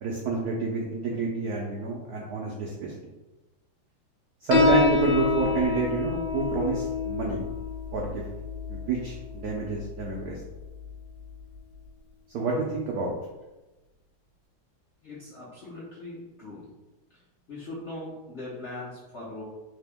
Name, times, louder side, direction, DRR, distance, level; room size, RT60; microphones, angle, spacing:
voice 1, 0.0-3.1 4.4-7.4 7.9-8.2 8.7-10.4 12.3-13.2, right 4 dB, 80° right, -2 dB, 0.8 m, -28 dB
Piano, 4.5-11.6, left 4 dB, 80° left, 1.5 m, -28 dB
voice 2, 15.0-16.7 17.5-19.4, left 2 dB, 55° left, -8 dB, 0.7 m, -40 dB
3.4 x 2.9 x 3.4 m, 1.1 s
omnidirectional pair, 2.2 m